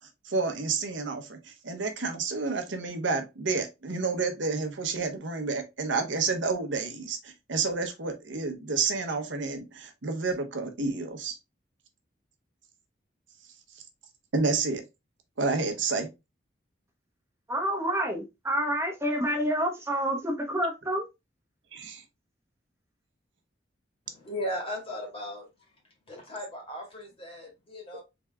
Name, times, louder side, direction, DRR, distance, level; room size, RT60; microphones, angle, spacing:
voice 1, 0.2-11.4 14.3-14.8 15.4-16.1 21.7-22.0, right 4 dB, 85° right, 0.9 m, -30 dB
voice 2, 17.5-21.1, equal, 15° right, 1.0 m, -28 dB
voice 3, 24.1-25.5 26.1-28.0, equal, 30° left, 1.8 m, -37 dB
3.9 x 3.5 x 3.4 m
head